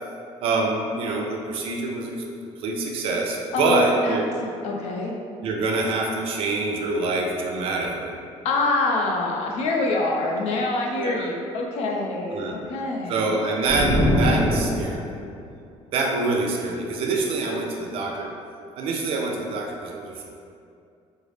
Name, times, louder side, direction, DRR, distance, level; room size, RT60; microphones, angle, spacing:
voice 1, 0.4-2.1 2.6-4.3 5.4-8.2 11.0-11.3 12.3-12.6 13.1-15.0 15.9-18.3 18.8-20.2, right 3 dB, 55° right, 0 dB, 0.5 m, -25 dB
voice 2, 3.5-5.1 8.4-13.3 17.4-17.6, left 2 dB, 70° left, 0 dB, 0.5 m, -25 dB
sound 1, 13.7-15.3, left 1 dB, 40° left, 0.7 m, -22 dB
3.8 x 2.0 x 3.3 m, 2.4 s
cardioid pair, 180°, 11 cm